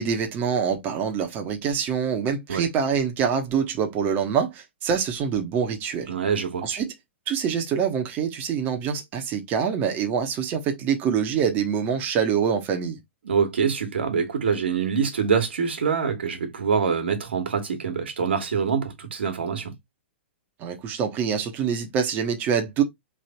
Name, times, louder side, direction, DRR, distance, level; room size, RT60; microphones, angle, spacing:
voice 1, 0.0-6.1 6.6-6.9 7.3-13.0 20.6-22.8, right 7 dB, 30° right, 1.2 m, -25 dB
voice 2, 6.1-6.7 13.2-19.7, right 6 dB, 65° right, 1.7 m, -25 dB
3.5 x 3.3 x 4.3 m
figure-of-eight pair, 110°, 6 cm